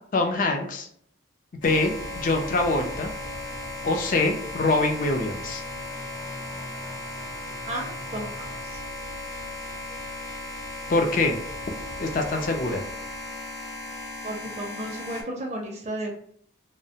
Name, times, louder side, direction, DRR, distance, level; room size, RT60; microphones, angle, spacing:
voice 1, 0.1-0.9 1.6-3.1 3.8-5.6 10.9-11.4 12.0-12.8, left 2 dB, 45° left, 4 dB, 0.4 m, -24 dB
sound 1, 1.6-15.2, left 1 dB, 70° left, 0.7 m, -36 dB
voice 2, 7.7-8.8 14.2-16.1, right 1 dB, 35° right, 0 dB, 0.4 m, -34 dB
2.7 x 2.1 x 2.7 m, 0.67 s
head